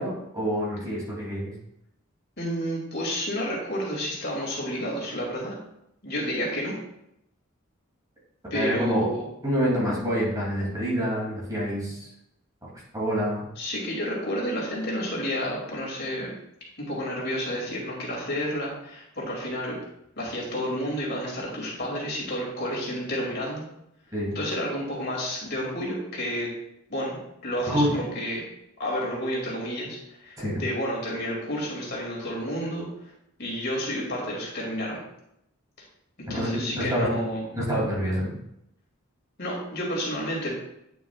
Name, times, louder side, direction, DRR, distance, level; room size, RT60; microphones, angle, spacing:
voice 1, 0.0-1.5 8.5-9.1 9.4-12.1 12.9-13.4 24.1-24.4 27.7-28.0 30.4-30.6 36.3-37.1 37.5-38.3, equal, 20° right, -5 dB, 2.6 m, -27 dB
voice 2, 2.4-5.6 6.0-6.7 8.5-9.2 13.6-16.3 16.8-19.8 20.2-23.6 24.3-26.5 26.9-27.2 27.4-28.4 28.8-32.9 33.4-35.0 36.3-37.4 39.4-40.5, equal, 55° left, -3 dB, 2.5 m, -30 dB
9.0 x 7.0 x 2.4 m, 0.79 s
head